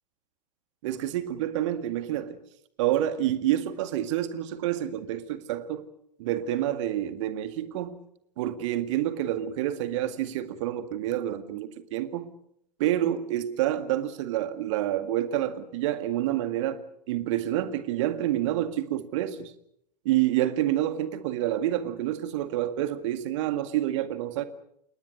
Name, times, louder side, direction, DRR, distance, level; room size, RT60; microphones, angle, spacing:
voice 1, 0.8-2.4 2.8-5.9 6.2-8.0 8.4-12.3 12.8-16.8 17.1-19.5 20.0-24.4, right 12 dB, 45° right, 2.0 m, -28 dB
29.5 x 18.5 x 6.5 m
figure-of-eight pair, 100°, 21 cm